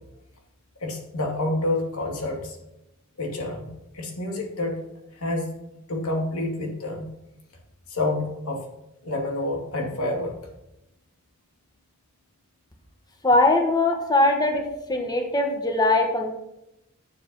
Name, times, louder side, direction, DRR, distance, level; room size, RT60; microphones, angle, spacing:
voice 1, 0.8-2.6 3.2-4.8 5.2-5.5 5.9-7.1 7.9-8.7 9.0-10.3, left 2 dB, 90° left, 1 dB, 2.4 m, -28 dB
voice 2, 13.2-16.3, left 2 dB, 20° left, 3 dB, 1.3 m, -21 dB
9.3 x 7.6 x 5.5 m, 0.89 s
head